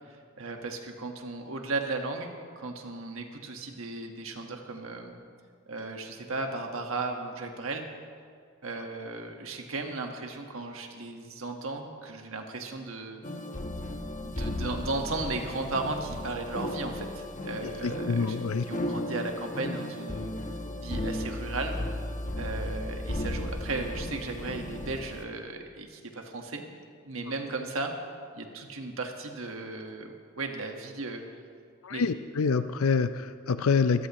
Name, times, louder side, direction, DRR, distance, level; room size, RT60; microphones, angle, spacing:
voice 1, 0.1-2.3 2.6-5.1 5.7-7.9 8.6-13.2 14.2-18.4 18.7-20.3 20.8-21.7 22.4-26.6 27.0-27.9 28.3-31.2 31.9-32.1, right 3 dB, 65° right, 3 dB, 1.5 m, -35 dB
sound 1, 13.2-25.2, left 1 dB, 35° left, 1.0 m, -35 dB
voice 2, 17.6-18.7 31.8-34.1, left 5 dB, 75° left, 11 dB, 0.5 m, -27 dB
21.5 x 14.0 x 3.1 m, 2.2 s
head